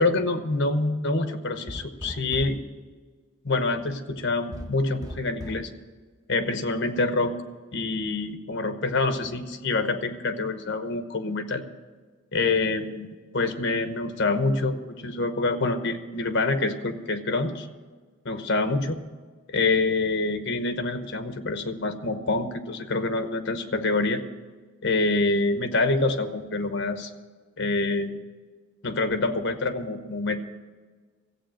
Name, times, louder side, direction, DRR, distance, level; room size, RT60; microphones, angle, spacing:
voice 1, 0.0-2.6 3.4-5.7 6.3-7.3 7.7-11.6 12.3-14.8 15.0-17.7 18.2-19.0 19.5-24.2 24.8-27.1 27.6-28.2 28.8-30.4, left 3 dB, 60° left, 9 dB, 1.0 m, -26 dB
sound 1, 1.7-2.7 4.5-5.7, equal, 20° right, 0.8 m, -38 dB
14.0 x 8.2 x 7.6 m, 1.4 s
head